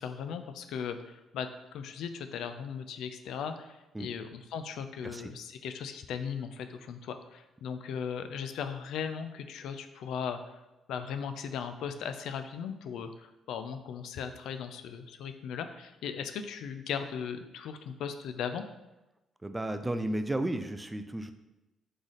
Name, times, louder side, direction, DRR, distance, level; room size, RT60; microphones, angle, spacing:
voice 1, 0.0-10.4 10.9-18.7, left 7 dB, 80° left, 8 dB, 0.3 m, -38 dB
voice 2, 19.4-21.3, right 1 dB, 15° right, 9 dB, 0.3 m, -33 dB
3.7 x 3.3 x 4.0 m, 0.98 s
cardioid pair, 90°, 0 cm